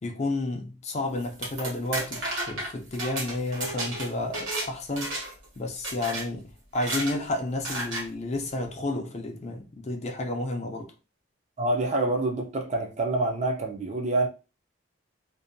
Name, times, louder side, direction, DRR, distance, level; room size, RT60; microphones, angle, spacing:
voice 1, 0.0-5.2 5.6-10.9, left 2 dB, 35° left, 0.4 m, -31 dB
sound 1, 1.2-4.7 5.0-5.4 5.8-6.3 6.7-7.2 7.6-8.1, right 1 dB, 70° right, 1.0 m, -32 dB
voice 2, 11.6-14.3, right 2 dB, 35° right, 0.4 m, -26 dB
2.6 x 2.1 x 2.6 m
head